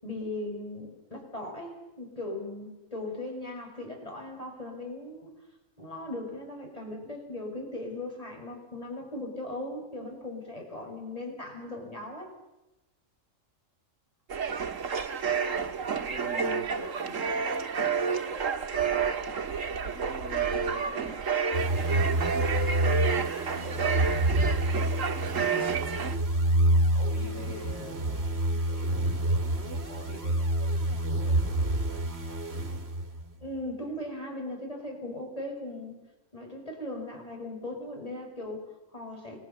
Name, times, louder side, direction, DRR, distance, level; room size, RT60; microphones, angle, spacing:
voice 1, 0.0-5.3 5.8-12.3 33.4-36.0 36.3-39.4, left 1 dB, 30° left, 2 dB, 6.0 m, -38 dB
sound 1, 14.3-26.2, right 6 dB, 85° right, 1.8 m, -30 dB
voice 2, 15.5-18.2 18.7-19.2 19.8-21.2 21.5-22.1 22.7-24.3 24.9-25.1 26.7-28.9 29.5-30.5 31.0-31.5 31.9-32.0, left 2 dB, 70° left, 1 dB, 5.6 m, -46 dB
sound 2, 21.5-33.3, right 1 dB, 55° right, 2.4 m, -28 dB
30.0 x 22.0 x 7.0 m, 1.0 s
omnidirectional pair, 1.3 m